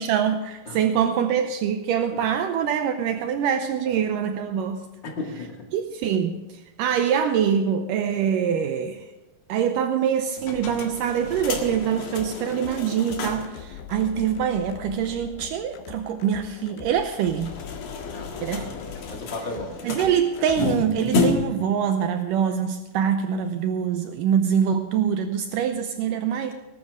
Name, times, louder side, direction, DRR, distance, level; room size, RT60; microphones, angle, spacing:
voice 1, 0.0-4.8 5.7-9.1 9.5-17.6 18.4-18.7 19.8-26.5, right 8 dB, 80° right, 7 dB, 2.2 m, -24 dB
voice 2, 5.0-5.7 18.1-18.7 19.1-19.8, left 2 dB, 35° left, 1 dB, 2.3 m, -35 dB
sound 1, 10.4-13.6 13.9-14.0 14.3-14.4 17.1-21.7, left 3 dB, 55° left, 2.8 m, -30 dB
sound 2, 11.2-20.7, left 9 dB, 85° left, 2.6 m, -42 dB
20.0 x 12.0 x 3.7 m, 1.1 s
omnidirectional pair, 4.0 m